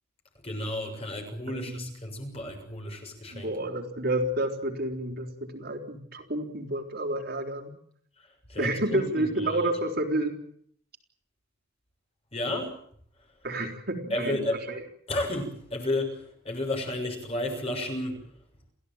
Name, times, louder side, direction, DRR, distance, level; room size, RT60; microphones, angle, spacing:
voice 1, 0.4-3.5 8.5-9.6 12.3-12.7 14.1-14.6 15.1-18.2, left 1 dB, 30° left, 3 dB, 6.8 m, -32 dB
voice 2, 1.5-1.8 3.3-7.7 8.6-10.4 13.4-14.8, right 1 dB, 50° right, 2 dB, 4.3 m, -30 dB
29.0 x 16.0 x 9.1 m, 0.64 s
head